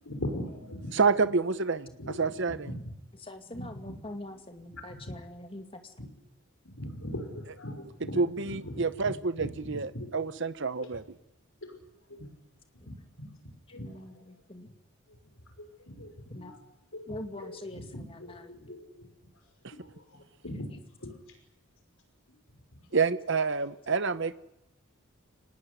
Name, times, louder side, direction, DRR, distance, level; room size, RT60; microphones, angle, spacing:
voice 1, 0.0-1.4 2.0-2.9 3.5-4.0 4.7-5.0 6.0-6.1 6.6-10.1 10.3-10.4 10.8-10.9 11.6-11.8 12.1-12.3 12.9-13.3 13.7-14.3 15.1-15.2 15.6-16.6 16.9-19.1 19.3-19.4 19.7-20.7 21.0-21.4 22.3-22.4 22.8-22.9, left 1 dB, 70° left, 5 dB, 5.6 m, -41 dB
voice 2, 0.9-1.9 2.2-2.6 8.2-11.0 22.9-24.3, right 4 dB, 55° right, 13 dB, 0.9 m, -28 dB
voice 3, 3.2-5.9 12.8-12.9 13.7-14.7 16.3-16.5 17.1-18.5, left 1 dB, 25° left, 5 dB, 2.3 m, -44 dB
25.5 x 19.5 x 9.6 m, 0.90 s
head